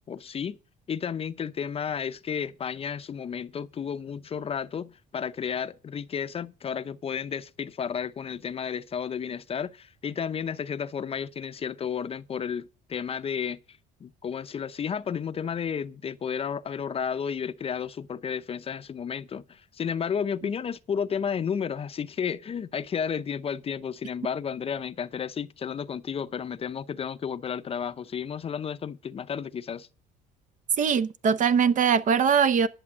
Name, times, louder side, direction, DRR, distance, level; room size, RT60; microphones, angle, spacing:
voice 1, 0.1-0.6 0.9-29.9, left 7 dB, 35° left, 0.6 m, -32 dB
voice 2, 30.8-32.7, right 6 dB, 50° right, 0.8 m, -22 dB
11.0 x 6.9 x 6.1 m
cardioid pair, 110°, 17 cm